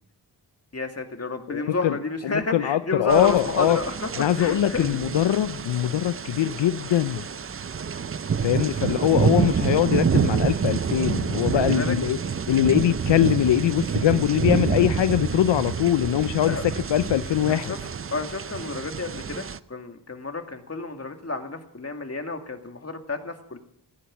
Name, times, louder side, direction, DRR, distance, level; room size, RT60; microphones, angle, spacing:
voice 1, 0.7-4.9 8.6-8.9 11.5-12.0 16.5-16.6 17.5-17.8 18.1-23.6, left 3 dB, 35° left, 5 dB, 2.2 m, -30 dB
voice 2, 1.5-2.0 2.2-3.8 4.2-7.2 8.4-12.2 12.5-17.7, left 11 dB, 80° left, 13 dB, 0.6 m, -22 dB
sound 1, 3.1-19.6, right 6 dB, 30° right, 0.5 m, -27 dB
sound 2, 4.7-15.2, right 1 dB, 55° right, 7.3 m, -53 dB
16.0 x 10.5 x 8.7 m, 0.74 s
cardioid pair, 65°, 44 cm